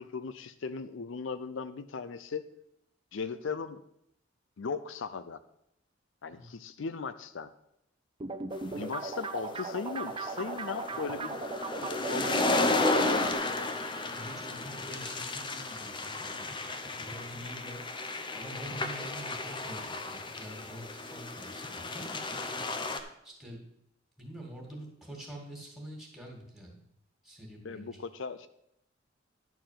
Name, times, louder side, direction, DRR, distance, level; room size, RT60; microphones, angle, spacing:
voice 1, 0.0-2.5 3.1-3.8 4.6-5.4 6.2-7.5 8.7-11.4 11.8-13.7 27.6-28.5, left 5 dB, 75° left, 12 dB, 0.5 m, -38 dB
sound 1, 8.2-13.3, right 3 dB, 25° right, 0.6 m, -37 dB
sound 2, 8.8-23.0, left 2 dB, 25° left, 0.7 m, -33 dB
voice 2, 14.1-16.5 17.0-17.8 18.3-22.5 23.2-23.6 24.2-26.8 27.2-28.0, equal, ahead, -1 dB, 2.3 m, -46 dB
10.5 x 4.5 x 7.5 m, 0.78 s
head